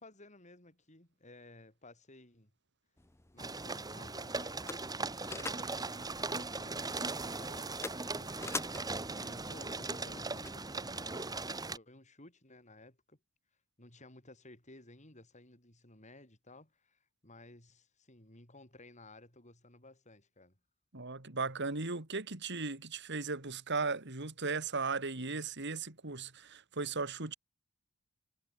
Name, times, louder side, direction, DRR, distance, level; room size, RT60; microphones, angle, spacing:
voice 1, 0.0-2.5 3.3-5.0 5.3-8.4 8.8-13.2 13.8-20.6, left 2 dB, 35° left, 6.9 m, -56 dB
sound 1, 3.0-11.0, left 3 dB, 15° left, 0.8 m, -47 dB
sound 2, 3.4-11.8, right 3 dB, 20° right, 1.9 m, -39 dB
voice 2, 20.9-27.3, right 4 dB, 55° right, 2.8 m, -37 dB
head